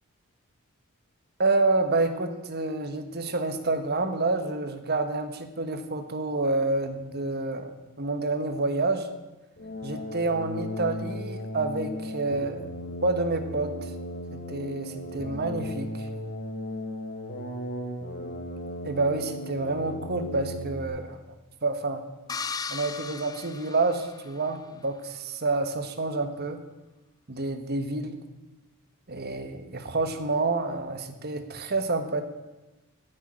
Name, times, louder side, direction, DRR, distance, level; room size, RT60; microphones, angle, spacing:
voice 1, 1.4-7.7 8.0-9.1 9.8-12.6 13.0-13.9 14.3-16.1 18.8-21.2 21.6-22.0 22.7-26.6 27.3-28.2 29.1-32.2, right 3 dB, 45° right, 8 dB, 1.4 m, -28 dB
sound 1, 9.6-20.8, left 1 dB, 45° left, 2.0 m, -36 dB
sound 2, 22.3-24.5, left 5 dB, 15° left, 0.5 m, -36 dB
10.5 x 9.2 x 10.0 m, 1.1 s
head